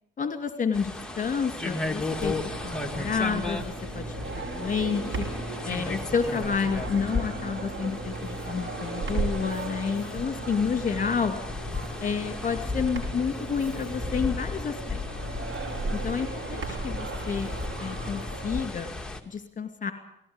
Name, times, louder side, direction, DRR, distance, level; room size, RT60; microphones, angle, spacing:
voice 1, 0.2-2.3 2.6-4.0 4.4-5.3 5.6-11.4 12.0-15.0 15.9-17.5 17.8-18.9 19.3-19.9, left 6 dB, 40° left, 8 dB, 2.5 m, -30 dB
sound 1, 0.7-19.2, left 3 dB, 5° left, 2.3 m, -36 dB
sound 2, 2.1-18.7, right 3 dB, 65° right, 6.0 m, -36 dB
19.0 x 16.5 x 9.7 m, 0.76 s
cardioid pair, 90°, 20 cm